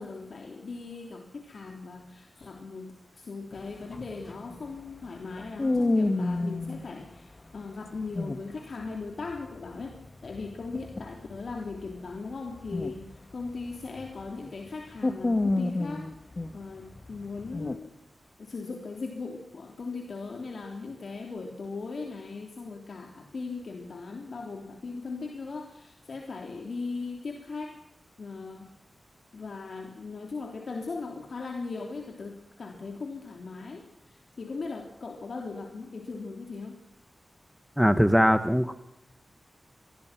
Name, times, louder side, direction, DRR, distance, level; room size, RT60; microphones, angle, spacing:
voice 1, 0.0-13.1 13.3-16.1 16.5-18.0 18.4-27.8 28.2-28.7 29.3-36.8, left 4 dB, 65° left, 3 dB, 3.4 m, -38 dB
sound 1, 3.5-6.8 7.9-8.9 9.2-14.3 14.7-17.8, left 2 dB, 35° left, 1.8 m, -31 dB
voice 2, 37.8-38.7, equal, ahead, 10 dB, 1.2 m, -21 dB
25.5 x 22.0 x 6.0 m, 0.81 s
wide cardioid pair, 115°, 0 cm